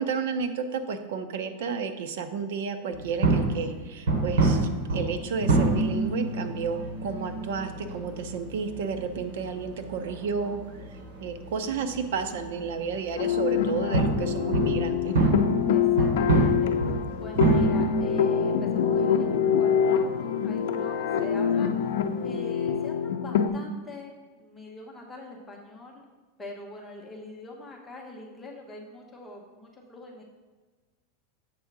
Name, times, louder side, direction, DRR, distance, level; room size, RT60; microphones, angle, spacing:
voice 1, 0.0-10.6 11.2-15.4, right 5 dB, 65° right, 8 dB, 0.7 m, -32 dB
sound 1, 2.9-22.3, right 3 dB, 80° right, 1.5 m, -28 dB
sound 2, 6.5-18.1, equal, 25° left, 2.2 m, -48 dB
sound 3, 13.2-23.5, left 7 dB, 75° left, 0.5 m, -25 dB
voice 2, 15.7-16.7 17.2-21.9 22.2-26.0 26.4-30.2, left 2 dB, 10° left, -2 dB, 1.0 m, -44 dB
7.7 x 3.6 x 6.0 m, 1.3 s
supercardioid pair, 175°, 0 cm